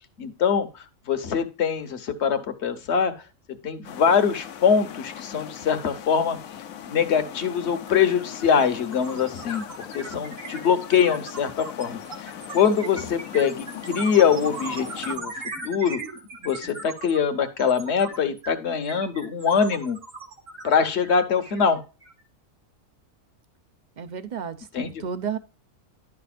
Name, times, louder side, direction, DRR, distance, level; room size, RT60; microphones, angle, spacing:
voice 1, 0.2-3.1 3.6-6.4 6.9-16.0 16.4-20.0 20.6-21.8 24.7-25.0, left 7 dB, 55° left, 1.2 m, -23 dB
sound 1, 3.8-15.2, left 9 dB, 85° left, 1.2 m, -40 dB
sound 2, 7.4-7.6 7.9-22.2, right 3 dB, 70° right, 2.4 m, -39 dB
voice 2, 24.0-25.4, right 7 dB, 45° right, 0.7 m, -32 dB
11.0 x 6.0 x 2.4 m
omnidirectional pair, 1.4 m